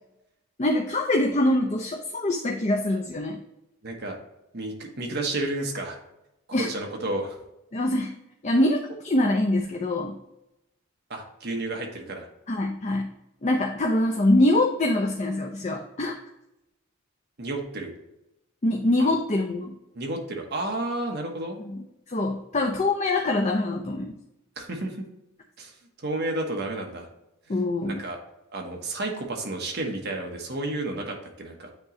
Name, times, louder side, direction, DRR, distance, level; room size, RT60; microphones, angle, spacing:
voice 1, 0.6-3.4 6.5-6.7 7.7-8.1 8.4-8.8 9.0-10.1 12.5-13.1 13.4-16.2 18.6-19.7 21.6-21.8 22.1-24.1 27.5-28.0, left 1 dB, 30° left, 2 dB, 0.5 m, -24 dB
voice 2, 3.8-4.2 4.5-6.0 6.5-7.4 11.1-12.3 17.4-17.9 19.0-19.1 19.9-21.6 24.6-25.0 25.6-27.1 27.5-27.6 27.9-28.2 28.5-31.7, right 2 dB, 50° right, 1 dB, 1.1 m, -31 dB
8.8 x 3.0 x 3.7 m, 0.90 s
head